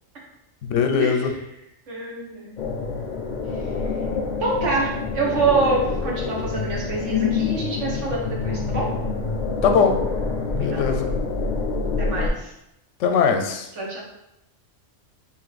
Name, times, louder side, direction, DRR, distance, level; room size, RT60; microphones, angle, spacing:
voice 1, 0.6-1.3 9.6-10.0 10.6-11.1 13.0-13.7, left 6 dB, 85° left, 5 dB, 0.9 m, -20 dB
voice 2, 1.9-2.6 4.4-8.9 10.5-11.2 12.0-12.5 13.8-14.0, right 3 dB, 75° right, -3 dB, 1.4 m, -26 dB
sound 1, 2.6-12.3, left 4 dB, 60° left, 0.5 m, -26 dB
3.5 x 2.9 x 4.0 m, 0.85 s
omnidirectional pair, 1.3 m